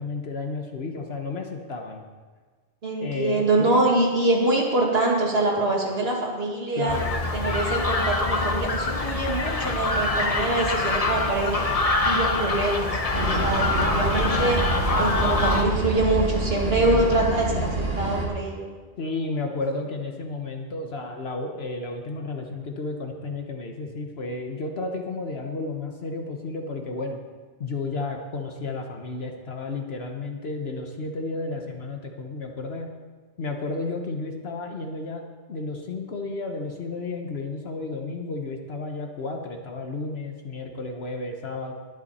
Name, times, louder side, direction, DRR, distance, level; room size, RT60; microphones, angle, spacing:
voice 1, 0.0-2.0 3.0-3.9 6.8-7.2 16.8-17.2 19.0-27.2 27.6-32.9 33.4-41.7, left 3 dB, 65° left, 3 dB, 1.4 m, -32 dB
voice 2, 2.8-7.0 7.3-11.7 12.0-13.0 13.3-14.6 15.0-18.7, right 2 dB, 65° right, -1 dB, 2.4 m, -24 dB
sound 1, 6.9-15.6, left 2 dB, 35° left, 1.0 m, -25 dB
sound 2, 13.1-18.3, right 2 dB, 50° right, 2.2 m, -27 dB
20.5 x 8.1 x 4.3 m, 1.5 s
omnidirectional pair, 1.1 m